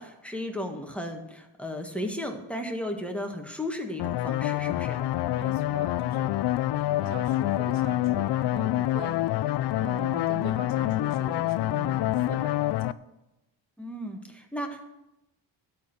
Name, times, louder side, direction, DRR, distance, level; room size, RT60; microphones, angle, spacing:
voice 1, 0.0-5.1 13.8-14.8, left 1 dB, 5° left, 3 dB, 1.5 m, -35 dB
sound 1, 4.0-12.9, left 14 dB, 65° left, 0.5 m, -27 dB
voice 2, 5.3-6.4 6.7-9.3 9.7-12.9, right 6 dB, 90° right, 8 dB, 1.1 m, -42 dB
12.5 x 4.5 x 7.8 m, 0.95 s
cardioid pair, 80°, 46 cm